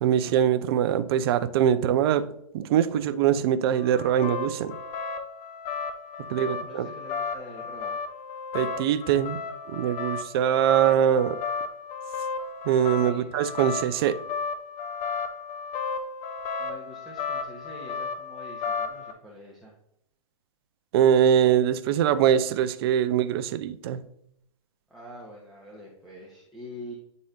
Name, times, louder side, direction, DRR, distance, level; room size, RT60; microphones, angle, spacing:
voice 1, 0.0-2.2 2.5-4.8 6.3-6.9 8.5-9.4 9.7-11.4 12.7-14.2 20.9-24.0, right 9 dB, 45° right, 11 dB, 0.5 m, -23 dB
sound 1, 3.8-19.1, left 5 dB, 30° left, 0.8 m, -34 dB
voice 2, 6.4-8.0 13.1-13.3 16.6-19.7 24.9-26.9, left 1 dB, ahead, -5 dB, 1.1 m, -44 dB
9.7 x 4.1 x 2.6 m, 0.74 s
figure-of-eight pair, 120°, 18 cm